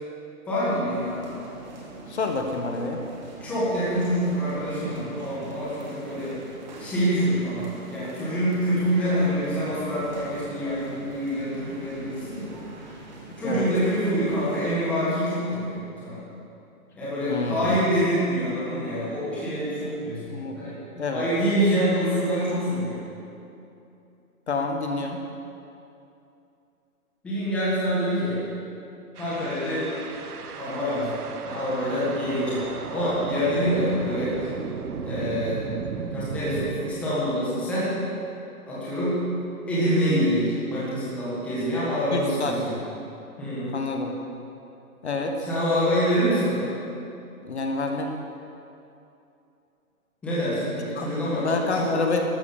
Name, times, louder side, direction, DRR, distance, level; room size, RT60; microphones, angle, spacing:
voice 1, 0.5-1.3 3.4-6.4 6.8-12.5 13.4-16.2 17.0-20.7 21.1-23.0 27.2-28.4 29.2-29.9 30.6-31.2 31.4-32.6 32.9-34.5 35.0-35.7 36.1-37.9 38.7-39.2 39.7-42.8 43.4-43.7 45.4-46.7 50.2-51.5 51.7-51.9, equal, 5° left, -10 dB, 1.6 m, -26 dB
sound 1, 0.9-14.7, right 2 dB, 30° right, 2.1 m, -43 dB
voice 2, 2.1-3.0 13.4-13.7 17.3-17.8 20.3-21.3 24.5-25.2 42.1-42.8 43.7-44.2 45.0-45.4 47.4-48.1 51.0-52.2, left 3 dB, 45° left, 3 dB, 1.4 m, -28 dB
sound 2, 29.1-36.8, right 6 dB, 85° right, 1.2 m, -35 dB
13.0 x 12.0 x 7.0 m, 2.7 s
hypercardioid pair, 170°, 45 cm